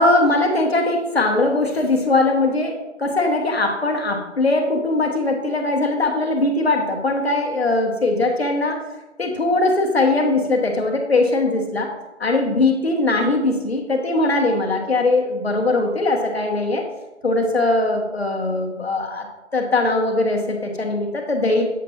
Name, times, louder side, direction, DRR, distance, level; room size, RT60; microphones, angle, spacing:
voice 1, 0.0-8.8 9.2-11.9 12.2-16.8 17.2-19.3 19.5-21.7, left 2 dB, 55° left, 2 dB, 1.1 m, -20 dB
7.5 x 5.1 x 2.8 m, 1.0 s
figure-of-eight pair, 175°, 37 cm